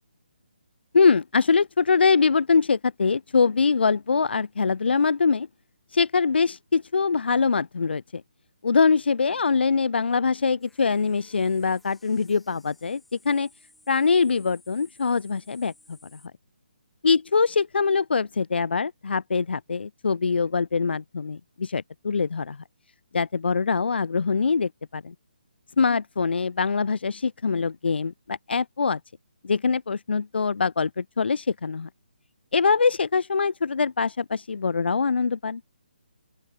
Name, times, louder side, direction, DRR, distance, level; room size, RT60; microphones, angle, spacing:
voice 1, 0.9-5.5 5.9-8.0 8.6-13.0 13.3-13.5 13.9-15.7 17.0-22.6 23.1-25.1 25.8-29.0 29.4-31.9 32.5-35.6, left 5 dB, 85° left, 0.4 m, -23 dB
sound 1, 10.6-16.3, left 2 dB, ahead, 3.8 m, -58 dB
open air
hypercardioid pair, 175°, 6 cm